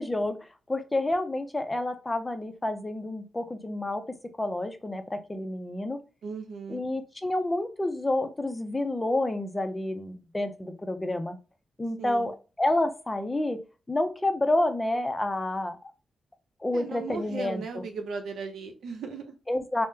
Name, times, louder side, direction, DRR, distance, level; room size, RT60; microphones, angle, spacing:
voice 1, 0.0-4.0 4.4-6.0 6.7-11.4 11.8-13.6 13.9-15.8 16.6-17.8 19.5-19.9, left 1 dB, 15° left, 8 dB, 0.4 m, -29 dB
voice 2, 6.2-6.8 12.0-12.3 16.7-19.3, right 4 dB, 80° right, 5 dB, 0.7 m, -37 dB
3.5 x 2.0 x 2.6 m, 0.32 s
wide cardioid pair, 120°, 0 cm